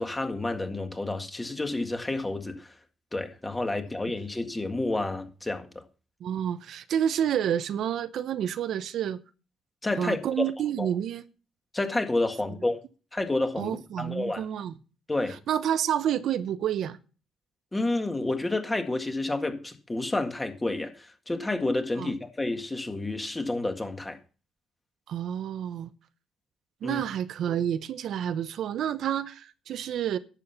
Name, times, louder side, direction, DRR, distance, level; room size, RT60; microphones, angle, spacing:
voice 1, 0.0-2.7 3.1-5.7 9.8-10.4 10.8-10.9 11.7-12.8 13.1-14.5 15.1-15.4 17.7-24.2 26.8-27.0, left 2 dB, 15° left, 1.9 m, -30 dB
voice 2, 6.2-9.2 10.0-11.2 13.6-14.7 15.5-17.0 22.0-22.1 25.1-25.9 26.8-30.2, right 9 dB, 75° right, 0.7 m, -29 dB
11.0 x 7.5 x 5.8 m
cardioid pair, 90°, 0 cm